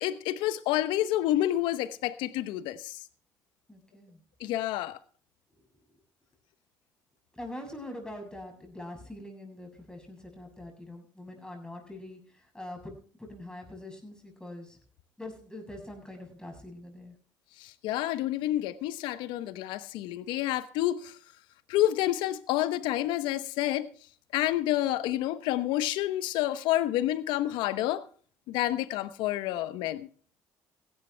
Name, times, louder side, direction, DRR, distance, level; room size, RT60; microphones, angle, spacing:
voice 1, 0.0-3.0 4.4-5.0 17.6-21.2 21.7-23.9 24.3-28.0 28.5-30.1, left 14 dB, 80° left, 0.9 m, -29 dB
voice 2, 3.7-4.2 7.3-14.8 15.2-17.2, left 1 dB, 10° left, 7.0 m, -44 dB
16.0 x 12.0 x 3.3 m
supercardioid pair, 60°, 8 cm